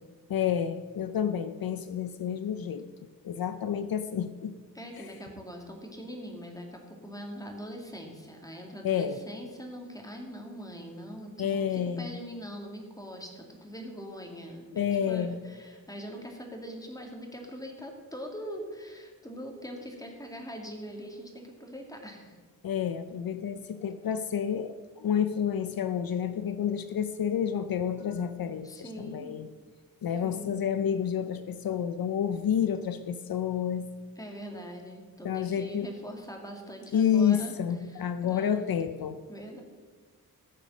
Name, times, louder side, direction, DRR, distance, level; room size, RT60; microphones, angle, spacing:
voice 1, 0.3-2.9 3.2-4.5 5.0-5.1 8.8-9.2 11.4-12.2 14.7-15.4 22.6-29.5 30.0-33.9 35.2-35.9 36.9-39.2, left 8 dB, 70° left, 11 dB, 0.6 m, -29 dB
voice 2, 4.7-22.4 28.6-29.4 30.2-30.5 34.2-37.5 37.8-38.7 39.3-39.6, equal, 10° left, 1 dB, 2.3 m, -42 dB
15.5 x 7.0 x 6.2 m, 1.5 s
wide cardioid pair, 95°, 37 cm